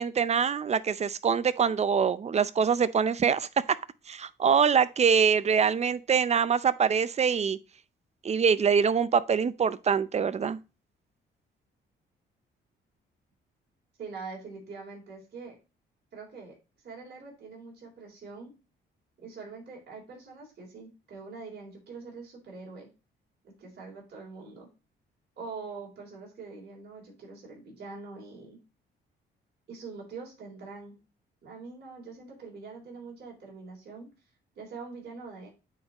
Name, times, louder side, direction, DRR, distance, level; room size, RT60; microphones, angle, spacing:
voice 1, 0.0-3.5 4.1-7.6 8.2-10.6, right 6 dB, 35° right, 0.5 m, -24 dB
voice 2, 14.0-15.6 16.1-16.5 16.8-18.5 19.2-22.9 23.4-24.7 25.4-28.6 29.7-31.0 31.4-34.1 34.6-35.5, right 4 dB, 55° right, 3.7 m, -44 dB
9.0 x 4.1 x 2.9 m
cardioid pair, 90°, 20 cm